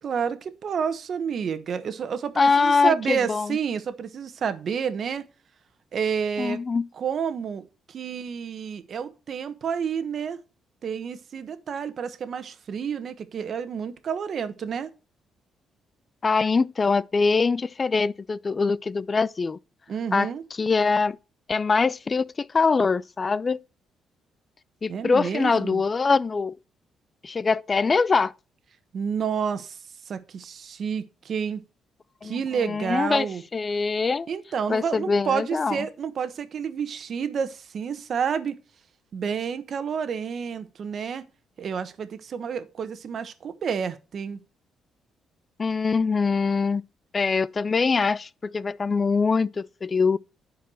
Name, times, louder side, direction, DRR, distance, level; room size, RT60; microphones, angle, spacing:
voice 1, 0.0-5.3 5.9-6.6 7.0-10.4 10.8-14.9 19.9-20.4 24.9-25.8 28.9-29.8 30.1-31.6 32.2-33.4 34.3-38.6 39.1-41.2 41.6-44.4, right 7 dB, 55° right, 1.2 m, -29 dB
voice 2, 2.4-3.6 6.4-6.9 16.2-19.6 20.1-20.3 20.6-21.2 21.5-23.6 24.8-26.6 27.2-28.3 32.2-33.3 33.5-34.3 34.7-35.9 45.6-46.8 47.1-50.2, left 4 dB, 35° left, 0.4 m, -23 dB
11.0 x 4.7 x 5.6 m
cardioid pair, 90°, 0 cm